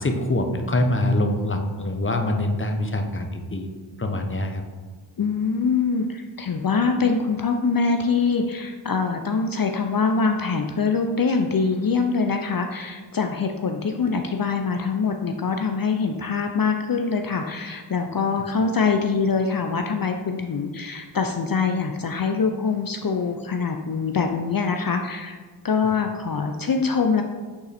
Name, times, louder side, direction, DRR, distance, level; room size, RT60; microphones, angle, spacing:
voice 1, 0.0-3.7 4.0-4.6 25.8-25.9, left 1 dB, 25° left, 4 dB, 1.0 m, -24 dB
voice 2, 5.2-25.4 25.6-27.2, left 5 dB, 45° left, 5 dB, 0.6 m, -24 dB
8.7 x 3.9 x 4.2 m, 1.4 s
cardioid pair, 45°, 47 cm